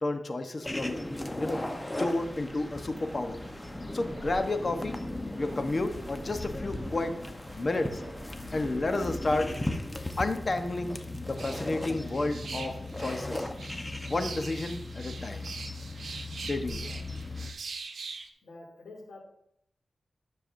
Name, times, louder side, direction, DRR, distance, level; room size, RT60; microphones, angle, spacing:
voice 1, 0.0-1.0 1.4-1.6 2.0-3.4 3.9-4.9 5.4-7.2 7.6-8.0 8.5-9.6 10.2-11.0 11.3-13.5 14.1-15.5 16.5-16.9, left 2 dB, 45° left, 7 dB, 1.0 m, -31 dB
sound 1, 0.6-17.5, left 2 dB, 20° left, 1.0 m, -37 dB
sound 2, 2.9-8.3, right 1 dB, 30° right, 3.7 m, -50 dB
sound 3, 11.3-18.3, right 4 dB, 80° right, 0.9 m, -42 dB
voice 2, 18.4-19.2, left 2 dB, 85° left, -1 dB, 2.8 m, -48 dB
13.0 x 6.8 x 2.7 m, 0.74 s
cardioid pair, 55°, 0 cm